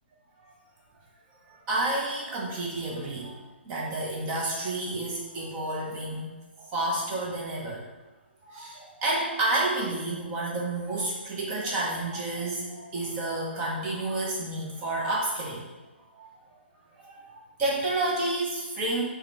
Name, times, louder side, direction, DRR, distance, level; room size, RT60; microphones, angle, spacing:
voice 1, 1.7-7.9 8.4-15.6 16.1-16.2 17.0-19.0, right 2 dB, 20° right, -4 dB, 0.8 m, -30 dB
4.7 x 2.3 x 4.8 m, 1.2 s
figure-of-eight pair, 130°, 6 cm